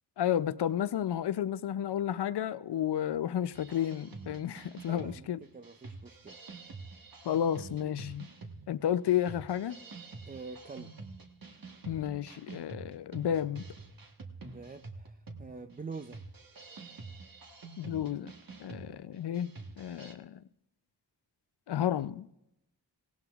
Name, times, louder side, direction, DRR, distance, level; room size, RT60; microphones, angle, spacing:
voice 1, 0.2-5.4 7.2-8.3 8.7-9.8 11.9-13.6 17.8-18.3 18.6-19.5 19.8-20.4 21.7-22.3, left 10 dB, 65° left, 0.6 m, -32 dB
sound 1, 3.5-20.1, right 3 dB, 50° right, 1.3 m, -48 dB
voice 2, 4.9-6.4 10.2-10.9 14.4-16.2, right 4 dB, 20° right, 0.4 m, -45 dB
17.5 x 16.5 x 2.4 m
cardioid pair, 45°, 44 cm